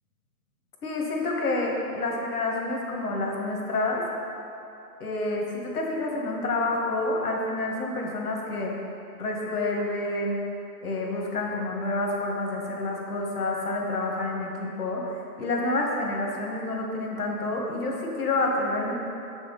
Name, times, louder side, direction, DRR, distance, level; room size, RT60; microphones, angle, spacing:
voice 1, 0.8-4.0 5.0-8.7 9.2-10.4 10.8-18.9, left 2 dB, 70° left, -1 dB, 1.9 m, -28 dB
7.1 x 6.3 x 5.6 m, 2.7 s
hypercardioid pair, 170°, 47 cm